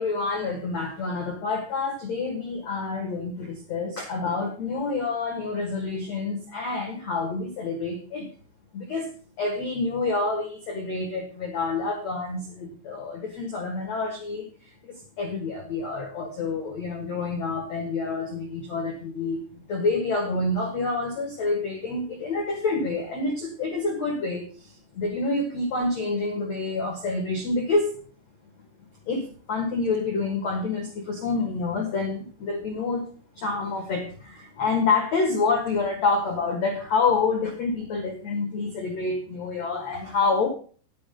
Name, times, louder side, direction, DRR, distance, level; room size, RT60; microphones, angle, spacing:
voice 1, 0.0-8.3 8.7-9.1 9.4-19.4 19.7-27.9 29.0-33.1 33.3-40.5, left 3 dB, 85° left, 2 dB, 1.5 m, -28 dB
10.0 x 7.7 x 5.1 m, 0.41 s
omnidirectional pair, 5.8 m